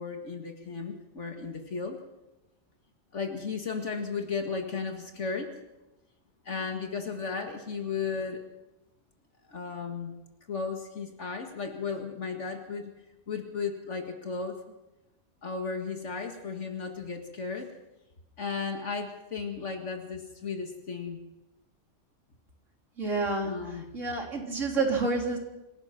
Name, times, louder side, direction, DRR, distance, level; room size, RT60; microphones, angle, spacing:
voice 1, 0.0-2.0 3.1-5.6 6.4-8.4 9.4-10.2 10.5-12.9 13.3-14.6 15.4-17.7 18.4-21.2 23.4-23.8, left 5 dB, 65° left, 3 dB, 2.1 m, -35 dB
voice 2, 23.0-23.5 23.9-25.4, right 3 dB, 75° right, 1 dB, 3.9 m, -28 dB
27.0 x 17.0 x 5.9 m, 0.99 s
omnidirectional pair, 1.3 m